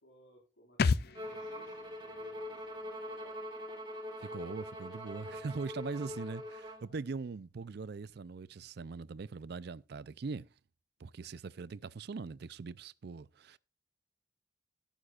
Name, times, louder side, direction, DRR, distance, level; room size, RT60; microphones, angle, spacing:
voice 1, 0.0-3.4 6.9-7.0, right 1 dB, 85° left, 4.3 m, -62 dB
sound 1, 0.8-4.3 4.6-4.7, left 4 dB, 55° left, 0.5 m, -36 dB
Bowed string instrument, 1.1-6.9, left 1 dB, 25° right, 2.4 m, -43 dB
voice 2, 4.2-10.5 11.0-13.6, right 4 dB, 60° right, 0.4 m, -41 dB
13.0 x 11.5 x 2.4 m
head